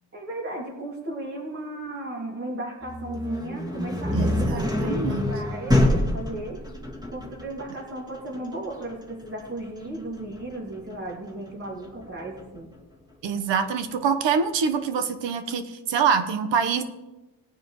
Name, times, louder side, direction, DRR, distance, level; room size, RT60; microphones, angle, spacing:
voice 1, 0.1-6.6 7.1-12.7, right 1 dB, 30° right, -5 dB, 2.6 m, -35 dB
sound 1, 2.8-12.6, left 1 dB, 10° right, 2.1 m, -27 dB
voice 2, 4.1-5.3 13.2-16.8, right 6 dB, 80° right, 9 dB, 1.2 m, -25 dB
19.0 x 9.3 x 3.2 m, 1.1 s
cardioid pair, 120°, 43 cm